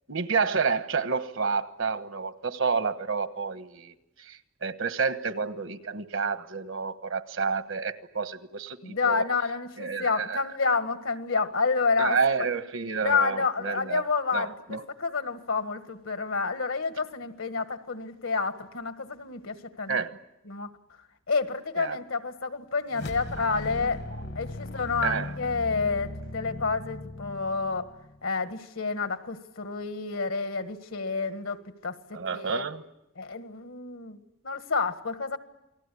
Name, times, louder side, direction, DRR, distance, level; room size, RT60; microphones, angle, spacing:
voice 1, 0.1-3.9 4.3-9.2 9.8-10.4 12.0-14.0 14.3-14.8 19.9-20.1 21.8-22.0 23.4-23.5 25.0-25.3 32.1-32.8, right 5 dB, 65° right, 1.2 m, -29 dB
voice 2, 8.8-12.5 13.0-20.0 20.5-20.7 21.3-24.0 24.4-27.9 28.2-32.6 33.2-34.2 34.4-35.4, left 4 dB, 75° left, 1.7 m, -29 dB
sound 1, 22.9-28.3, left 1 dB, 55° left, 1.2 m, -38 dB
29.0 x 19.5 x 8.5 m
head